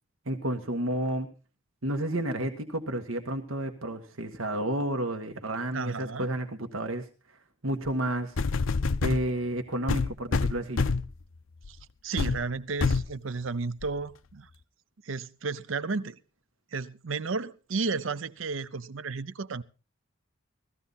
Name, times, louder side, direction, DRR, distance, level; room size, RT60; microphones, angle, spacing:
voice 1, 0.3-1.3 1.8-7.1 7.6-8.4 9.0-10.9, right 1 dB, 85° right, 1.6 m, -31 dB
voice 2, 5.7-6.3 11.7-11.8 12.0-14.5 15.0-16.2 16.7-19.6, right 4 dB, 70° right, 0.7 m, -33 dB
sound 1, 7.9-8.0 8.4-9.3 9.9-11.1 11.6-11.8 12.2-12.4 12.8-13.1 13.8-13.9, left 4 dB, 75° left, 0.7 m, -26 dB
16.5 x 14.5 x 4.0 m
head